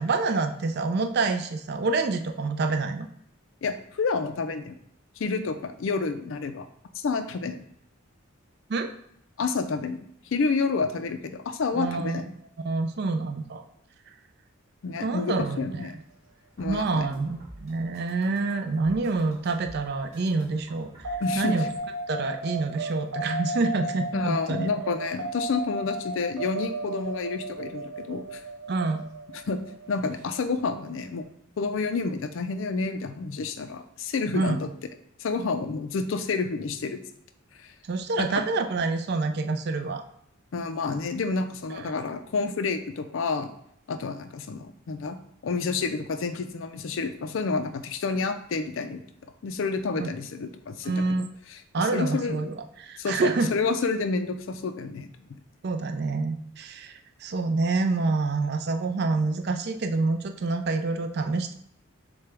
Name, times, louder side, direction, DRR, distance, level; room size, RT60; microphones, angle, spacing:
voice 1, 0.0-3.1 8.7-8.9 11.7-12.2 12.6-13.6 15.0-15.9 16.6-21.7 22.1-24.7 28.7-29.0 34.3-34.6 37.8-40.0 41.7-41.9 50.0-50.1 50.8-51.3 51.7-53.5 55.6-61.5, right 3 dB, 50° right, 7 dB, 0.4 m, -27 dB
voice 2, 3.6-4.7 5.2-6.6 6.9-7.6 9.4-10.0 10.3-12.3 14.8-16.0 16.6-17.1 21.2-21.6 24.1-28.4 29.5-29.6 29.9-31.2 31.6-34.7 35.2-37.0 37.6-37.7 38.2-38.4 40.5-43.6 43.9-45.2 45.4-49.0 49.4-51.0 51.8-52.5 53.0-55.4, left 4 dB, 65° left, 9 dB, 0.4 m, -29 dB
sound 1, 16.5-21.8, right 1 dB, 30° right, 1.6 m, -49 dB
sound 2, 21.0-31.2, right 1 dB, 70° right, 1.1 m, -35 dB
6.7 x 2.2 x 3.4 m, 0.72 s
head